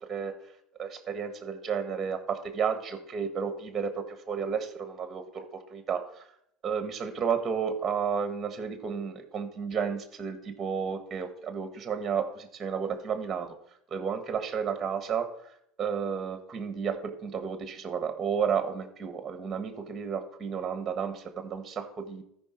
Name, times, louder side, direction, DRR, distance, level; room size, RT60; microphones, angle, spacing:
voice 1, 0.8-6.3 6.6-13.5 13.9-15.3 15.8-22.2, right 6 dB, 25° right, 7 dB, 1.5 m, -32 dB
13.5 x 5.3 x 4.4 m, 0.74 s
supercardioid pair, 105°, 0 cm